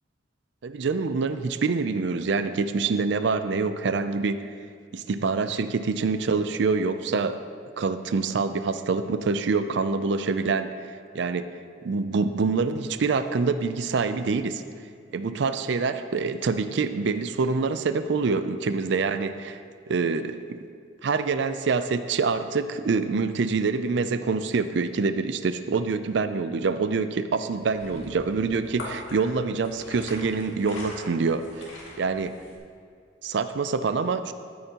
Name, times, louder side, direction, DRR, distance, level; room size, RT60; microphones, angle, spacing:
voice 1, 0.6-4.5 4.9-7.4 7.8-10.8 11.1-11.5 11.8-14.6 15.1-19.6 19.9-20.6 21.0-32.4 33.2-34.3, right 4 dB, 60° right, 11 dB, 0.4 m, -26 dB
sound 1, 27.5-32.6, left 1 dB, 85° left, 2.1 m, -42 dB
13.5 x 8.8 x 2.9 m, 2.3 s
head